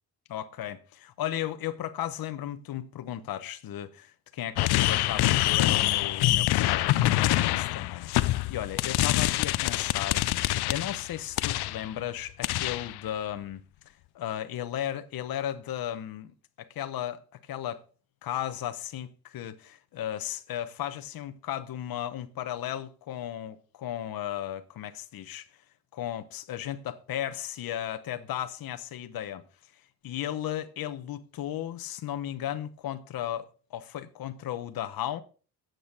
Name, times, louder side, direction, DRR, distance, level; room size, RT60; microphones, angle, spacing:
voice 1, 0.3-10.2 10.7-13.6 14.1-16.3 16.6-17.8 18.2-25.5 25.9-29.4 30.0-35.2, left 11 dB, 65° left, 1.0 m, -35 dB
sound 1, 4.6-11.9 12.4-13.0, left 16 dB, 90° left, 0.6 m, -25 dB
8.7 x 7.8 x 5.3 m
cardioid pair, 115°, 38 cm